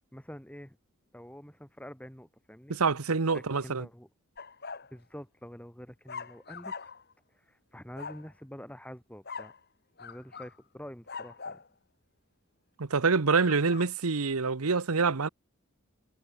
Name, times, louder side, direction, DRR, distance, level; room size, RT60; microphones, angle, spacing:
voice 1, 0.1-0.8 1.1-2.8 3.3-4.1 4.9-6.7 7.3-9.5 10.0-11.6, equal, 5° left, 4.2 m, -46 dB
voice 2, 2.7-3.8 12.8-15.3, right 4 dB, 85° right, 1.0 m, -26 dB
sound 1, 4.4-4.9 6.1-7.1 8.0-8.3 9.3-9.6 10.0-10.6 11.1-11.7 13.4-13.9, left 5 dB, 50° left, 6.1 m, -42 dB
head